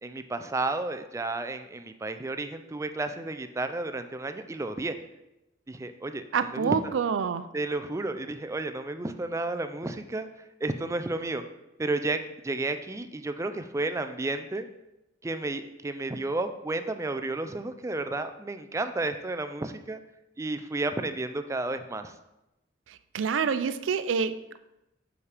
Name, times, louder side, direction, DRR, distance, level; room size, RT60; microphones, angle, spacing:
voice 1, 0.0-4.9 5.7-6.2 6.5-6.7 7.5-10.3 10.6-11.4 11.8-14.7 15.2-20.0 20.4-22.1, right 2 dB, 15° right, 9 dB, 0.4 m, -32 dB
voice 2, 6.3-7.5 22.9-24.6, right 6 dB, 85° right, 12 dB, 0.4 m, -27 dB
7.1 x 5.0 x 3.4 m, 0.93 s
head